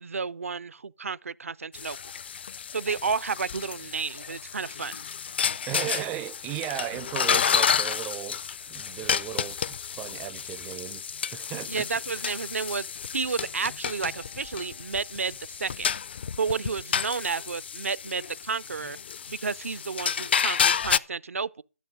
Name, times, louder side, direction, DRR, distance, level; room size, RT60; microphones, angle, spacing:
voice 1, 0.0-2.0 2.7-5.0 11.7-12.9 13.1-15.9 16.4-19.0 19.3-21.6, right 5 dB, 65° right, 0.5 m, -31 dB
sound 1, 1.7-21.0, left 7 dB, 45° left, 0.5 m, -30 dB
voice 2, 5.7-8.4 8.7-11.9 12.1-12.4, right 13 dB, 10° right, 0.4 m, -36 dB
13.5 x 6.6 x 4.9 m
figure-of-eight pair, 150°, 8 cm